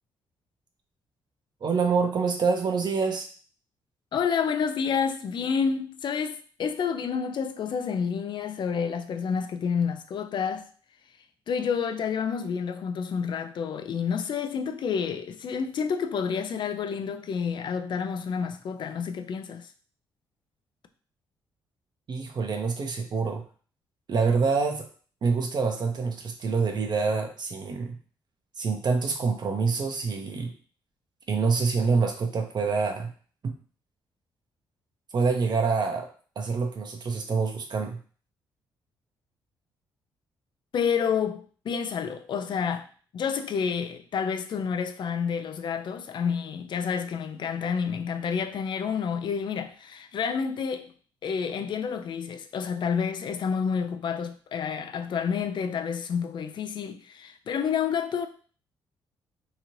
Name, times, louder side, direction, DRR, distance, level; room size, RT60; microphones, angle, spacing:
voice 1, 1.6-3.3 22.1-23.4 24.1-24.9 25.2-28.0 28.6-30.5 31.3-33.1 35.1-36.1 36.4-38.0, right 4 dB, 50° right, 0.6 m, -26 dB
voice 2, 4.1-10.7 11.5-19.7 40.7-42.9 43.1-50.9 51.2-58.3, left 6 dB, 55° left, 0.4 m, -29 dB
2.9 x 2.5 x 2.9 m
supercardioid pair, 60°, 9 cm